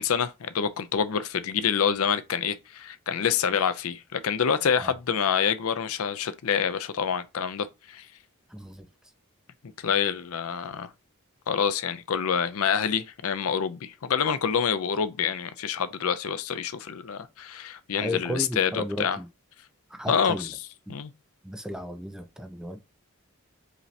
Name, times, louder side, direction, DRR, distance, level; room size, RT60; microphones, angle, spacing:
voice 1, 0.0-8.1 9.8-10.9 11.5-19.2 20.1-20.5 20.9-21.1, left 7 dB, 80° left, 0.5 m, -27 dB
voice 2, 8.5-9.1 18.0-19.3 19.9-20.5 20.9-21.0 21.4-22.8, left 1 dB, 5° right, 0.4 m, -34 dB
4.9 x 2.8 x 3.2 m
head